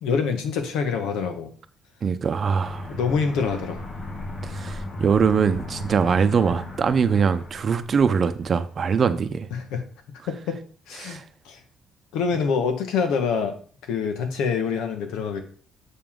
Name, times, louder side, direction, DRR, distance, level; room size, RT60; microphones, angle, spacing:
voice 1, 0.0-1.5 2.9-3.8 9.5-9.8 10.3-10.6 10.9-11.2 11.4-11.6 12.1-13.5 13.9-15.4, left 5 dB, 90° left, 1.4 m, -25 dB
voice 2, 2.0-2.9 4.4-9.5 11.0-11.2, right 6 dB, 45° right, 0.7 m, -22 dB
Aircraft, 2.6-8.7, left 2 dB, 45° left, 3.8 m, -36 dB
7.0 x 6.8 x 3.8 m
cardioid pair, 105°, 0 cm